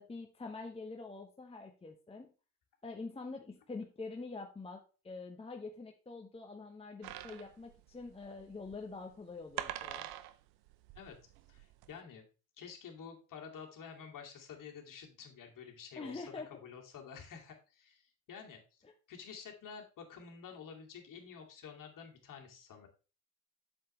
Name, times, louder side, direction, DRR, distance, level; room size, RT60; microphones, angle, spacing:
voice 1, 0.0-2.3 2.8-10.1 16.0-16.6 18.8-18.9, left 3 dB, 15° left, 3 dB, 1.0 m, -45 dB
sound 1, 7.0-11.9, right 13 dB, 55° right, 0.8 m, -45 dB
voice 2, 11.5-12.2 12.6-18.8 19.1-22.9, left 6 dB, 45° left, 1 dB, 2.6 m, -50 dB
7.8 x 7.2 x 3.2 m, 0.34 s
hypercardioid pair, 75°, 46 cm